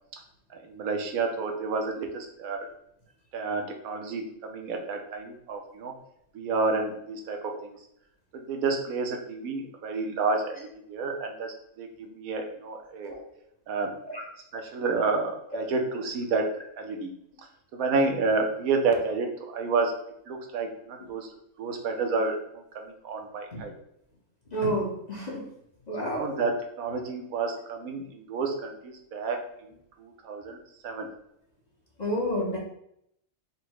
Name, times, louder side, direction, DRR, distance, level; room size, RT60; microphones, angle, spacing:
voice 1, 0.5-2.7 3.3-5.9 6.3-7.7 8.3-13.1 13.7-13.9 14.5-16.4 16.8-17.1 17.7-19.9 20.3-21.3 21.6-22.4 22.8-23.7 26.0-29.4 30.0-30.6 30.8-31.1, right 4 dB, 75° right, 3 dB, 1.2 m, -30 dB
voice 2, 24.5-25.4 25.9-26.3 32.0-32.6, equal, 35° left, -3 dB, 0.8 m, -30 dB
4.1 x 2.2 x 4.5 m, 0.74 s
omnidirectional pair, 1.5 m